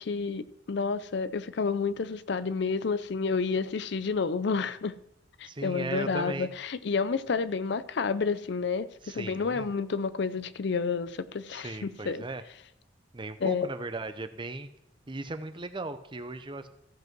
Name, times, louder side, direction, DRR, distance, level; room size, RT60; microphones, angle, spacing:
voice 1, 0.0-5.0 5.4-12.2 13.4-13.7, left 5 dB, 60° left, 0.5 m, -30 dB
voice 2, 5.4-6.5 9.0-9.7 11.5-12.4 13.1-14.7 15.1-16.7, right 2 dB, 25° right, 0.7 m, -37 dB
15.0 x 5.4 x 6.0 m
head